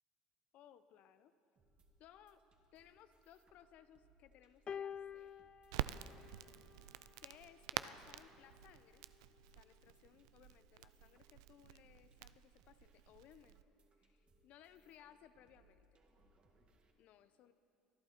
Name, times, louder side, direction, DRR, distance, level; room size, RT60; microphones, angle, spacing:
voice 1, 0.5-1.3 2.0-2.4 2.7-5.3 7.2-9.0 9.6-13.6 14.0-15.9 16.2-16.3 17.0-17.5, left 10 dB, 60° left, 12 dB, 0.8 m, -63 dB
sound 1, 1.6-16.9, right 1 dB, 40° right, 1.9 m, -73 dB
sound 2, 4.7-7.1 8.2-8.3, left 8 dB, 35° left, 0.4 m, -49 dB
Crackle, 5.7-13.6, right 14 dB, 80° right, 0.4 m, -48 dB
24.0 x 11.5 x 4.4 m, 2.6 s
hypercardioid pair, 75°, 3 cm